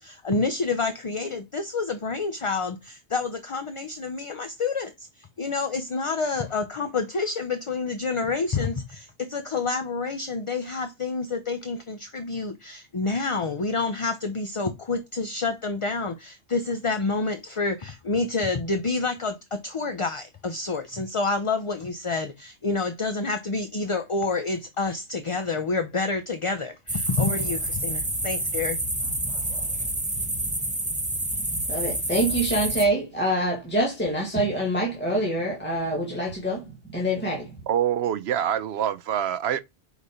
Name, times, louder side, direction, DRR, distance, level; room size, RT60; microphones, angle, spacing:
voice 1, 0.0-28.8, left 3 dB, 35° left, 0.6 m, -28 dB
sound 1, 26.9-32.9, right 1 dB, 10° right, 0.6 m, -28 dB
voice 2, 31.7-37.6, right 1 dB, 10° left, 1.9 m, -26 dB
voice 3, 37.7-39.6, right 10 dB, 70° right, 0.8 m, -25 dB
5.0 x 4.2 x 4.9 m
omnidirectional pair, 1.2 m